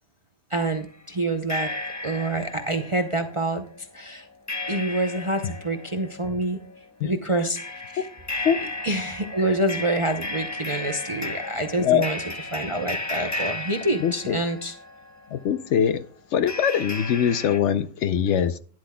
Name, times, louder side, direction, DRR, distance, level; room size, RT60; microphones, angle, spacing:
voice 1, 0.5-1.7 2.0-4.3 4.7-6.6 7.0-8.0 8.4-8.5 8.8-12.2 12.5-14.7, right 2 dB, 35° right, 0.5 m, -27 dB
sound 1, 0.7-0.8 1.5-15.5 16.5-17.6, left 2 dB, 15° left, 0.7 m, -34 dB
voice 2, 14.0-14.4 15.3-16.0 16.3-18.6, left 9 dB, 70° left, 0.8 m, -22 dB
12.0 x 10.5 x 2.2 m
omnidirectional pair, 1.4 m